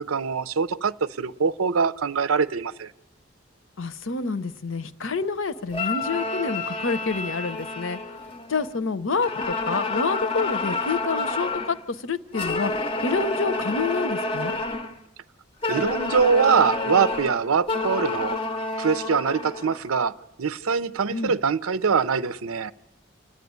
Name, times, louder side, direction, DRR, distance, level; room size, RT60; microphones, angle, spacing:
voice 1, 0.0-2.9 15.7-18.4 18.8-20.1 20.4-22.7, right 5 dB, 85° right, 0.6 m, -23 dB
voice 2, 3.8-8.0 8.5-11.8 12.0-12.7 13.0-14.6 21.1-21.3, left 4 dB, 70° left, 0.8 m, -28 dB
sound 1, 5.7-8.8 9.2-11.8 12.3-15.0 15.6-19.8, left 2 dB, 25° left, 0.6 m, -29 dB
29.0 x 11.0 x 9.5 m
head